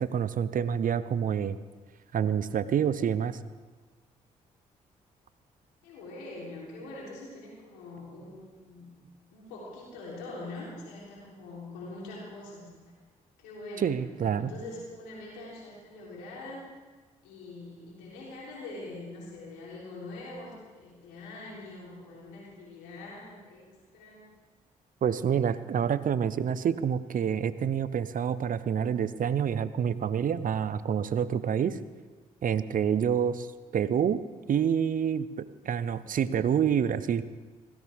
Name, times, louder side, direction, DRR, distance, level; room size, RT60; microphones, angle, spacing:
voice 1, 0.0-1.6 2.1-3.4 13.8-14.5 25.0-31.8 32.4-33.5 33.7-34.2 34.5-37.2, right 8 dB, 55° right, 15 dB, 0.8 m, -27 dB
voice 2, 5.8-8.9 9.3-12.7 13.4-16.6 17.2-24.3, left 2 dB, 85° left, -4 dB, 3.5 m, -43 dB
17.0 x 16.5 x 3.6 m, 1.3 s
hypercardioid pair, 50°, 17 cm